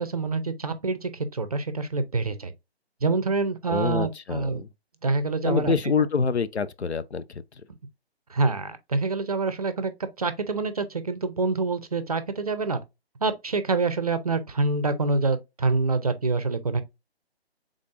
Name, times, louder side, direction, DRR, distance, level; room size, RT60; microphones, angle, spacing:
voice 1, 0.0-2.5 3.0-4.6 5.0-5.7 8.3-9.9 10.2-12.8 13.2-16.8, right 3 dB, 35° right, 0.5 m, -26 dB
voice 2, 3.7-4.7 5.4-7.4, left 5 dB, 85° left, 0.5 m, -26 dB
5.0 x 3.7 x 2.5 m
figure-of-eight pair, 145°, 32 cm